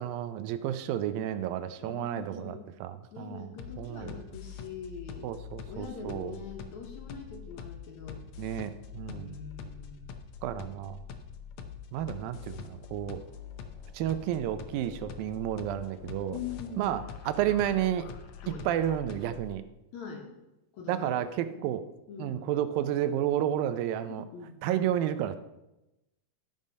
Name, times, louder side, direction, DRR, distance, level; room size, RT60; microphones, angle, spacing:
voice 1, 0.0-3.5 3.8-4.2 5.2-6.4 8.4-9.4 10.4-11.0 11.9-13.2 13.9-16.4 16.8-18.1 18.7-19.6 20.9-21.8 22.2-24.2 24.6-25.4, right 11 dB, 80° right, 11 dB, 2.3 m, -31 dB
voice 2, 1.8-2.6 3.1-5.3 5.7-8.2 9.1-10.1 16.3-17.0 18.4-18.7 19.9-20.3 20.7-21.2 21.5-21.7 22.1-22.5 24.1-24.6, left 6 dB, 60° left, 1 dB, 2.3 m, -43 dB
sound 1, 3.6-19.6, left 7 dB, 80° left, 1.6 m, -44 dB
13.0 x 5.5 x 5.2 m, 0.96 s
omnidirectional pair, 4.2 m